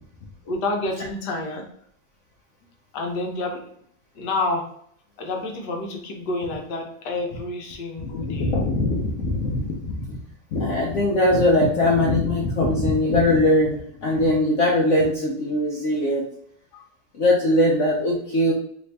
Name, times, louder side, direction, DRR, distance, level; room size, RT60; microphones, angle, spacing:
voice 1, 0.4-1.7 2.9-3.6 4.1-4.7 5.2-8.5 16.7-16.8, left 2 dB, 70° left, 2 dB, 1.2 m, -29 dB
voice 2, 8.0-10.2 10.5-16.2 17.2-18.5, left 1 dB, 85° left, -3 dB, 0.6 m, -21 dB
3.2 x 2.6 x 3.3 m, 0.66 s
omnidirectional pair, 2.0 m